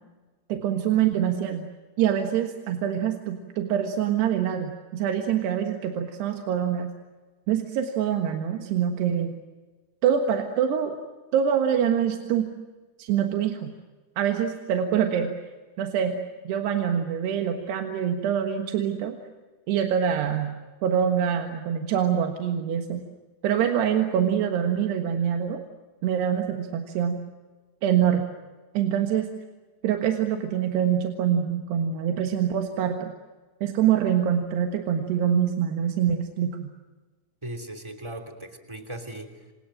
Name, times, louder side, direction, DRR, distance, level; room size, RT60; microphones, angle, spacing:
voice 1, 0.5-1.7 2.0-6.9 7.5-9.4 10.0-11.0 11.3-12.5 13.0-13.7 14.2-15.3 15.8-16.2 16.4-19.2 19.7-20.5 20.8-23.0 23.4-25.6 26.0-27.2 27.8-28.3 28.8-29.3 29.8-33.1 33.6-36.7, right 9 dB, 90° right, 5 dB, 3.7 m, -25 dB
voice 2, 37.4-39.5, right 1 dB, 10° right, 5 dB, 2.3 m, -38 dB
29.0 x 28.0 x 6.4 m, 1.3 s
omnidirectional pair, 4.6 m